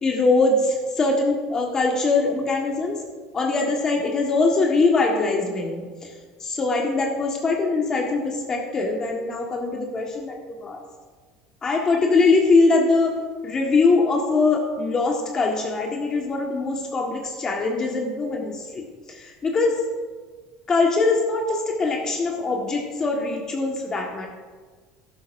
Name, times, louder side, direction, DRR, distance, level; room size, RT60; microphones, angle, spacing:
voice 1, 0.0-3.1 3.3-6.1 6.4-10.8 11.6-13.2 13.4-19.9 20.7-24.3, left 3 dB, 30° left, 0 dB, 1.5 m, -22 dB
12.0 x 10.5 x 2.6 m, 1.4 s
supercardioid pair, 95°, 2 cm